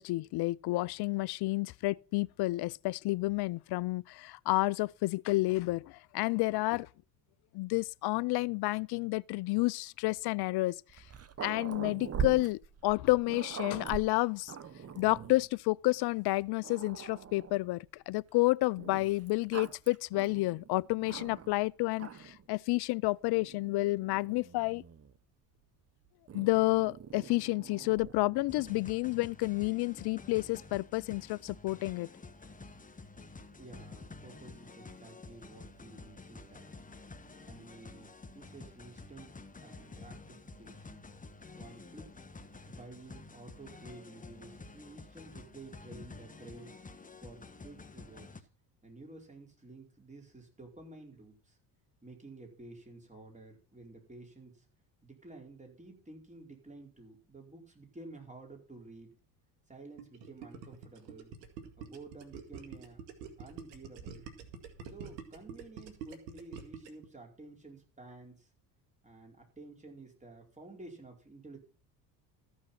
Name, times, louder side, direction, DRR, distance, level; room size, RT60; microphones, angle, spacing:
voice 1, 0.0-6.9 7.5-10.8 11.4-14.5 15.0-24.8 26.3-32.1, left 21 dB, 55° left, 0.5 m, -30 dB
Growling, 10.9-15.5 16.2-16.3 16.6-17.7 18.8-21.6 21.9-22.5 23.3-25.2 26.3-28.8, right 7 dB, 30° right, 1.1 m, -43 dB
sound 1, 28.5-48.4, left 3 dB, 15° left, 1.3 m, -50 dB
voice 2, 33.6-36.8 37.4-39.3 39.6-41.0 41.5-42.1 42.7-46.8 47.2-48.5 48.8-51.6 52.0-54.7 55.0-59.2 59.7-61.3 61.8-63.0 63.4-64.3 64.9-68.5 69.0-71.6, right 2 dB, 15° right, 4.8 m, -52 dB
Gurgling, 60.0-67.1, right 6 dB, 85° right, 2.1 m, -46 dB
14.0 x 6.4 x 5.9 m
supercardioid pair, 75°, 49 cm